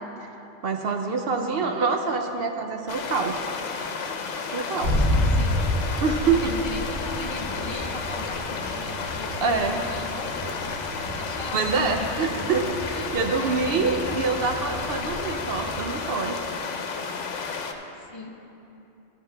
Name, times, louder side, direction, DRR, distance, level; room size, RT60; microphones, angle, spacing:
voice 1, 0.6-3.5 4.5-5.1 6.0-6.5 9.4-9.9 11.5-16.4, right 4 dB, 60° right, 4 dB, 0.7 m, -26 dB
voice 2, 1.4-1.7 5.2-5.5 6.4-12.4 12.9-14.8 17.9-18.4, left 3 dB, 35° left, 3 dB, 0.4 m, -39 dB
sound 1, 2.9-17.7, left 5 dB, 80° left, 1.0 m, -32 dB
sound 2, 4.8-15.9, left 1 dB, 35° right, 1.3 m, -30 dB
13.0 x 7.6 x 3.4 m, 2.9 s
omnidirectional pair, 1.2 m